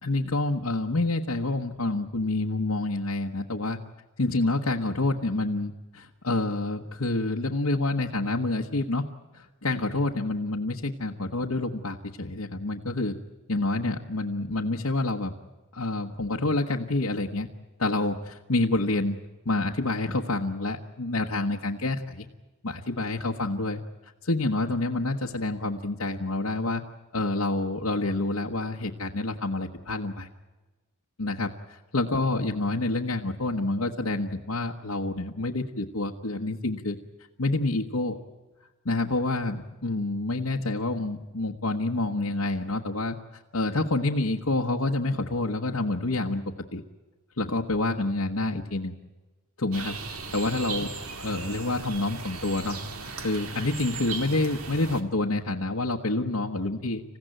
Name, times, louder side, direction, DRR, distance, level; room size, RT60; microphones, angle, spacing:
voice 1, 0.0-3.8 4.2-9.0 9.3-13.2 13.5-15.3 15.7-17.5 17.8-19.2 19.4-22.3 22.6-23.8 24.2-26.8 27.1-30.3 31.2-37.0 37.4-38.2 38.8-43.2 43.5-46.4 46.7-46.8 47.4-48.9 49.6-50.0 50.3-50.9 51.2-57.0, left 2 dB, 75° left, -1 dB, 1.2 m, -28 dB
sound 1, 49.7-55.0, right 4 dB, 75° right, 2.1 m, -37 dB
27.5 x 16.0 x 9.0 m, 1.2 s
head